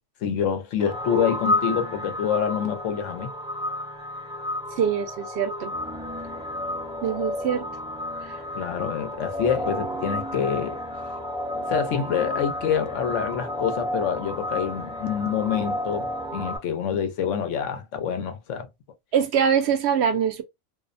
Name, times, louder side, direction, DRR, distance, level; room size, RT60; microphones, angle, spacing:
voice 1, 0.2-3.3 8.5-10.8 11.5-18.7, left 8 dB, 85° left, 1.0 m, -26 dB
sound 1, 0.8-16.6, left 1 dB, 5° right, 0.5 m, -31 dB
voice 2, 4.8-5.7 7.0-7.7 8.2-8.3 19.1-20.4, right 8 dB, 65° right, 0.8 m, -23 dB
2.6 x 2.0 x 2.4 m
omnidirectional pair, 1.2 m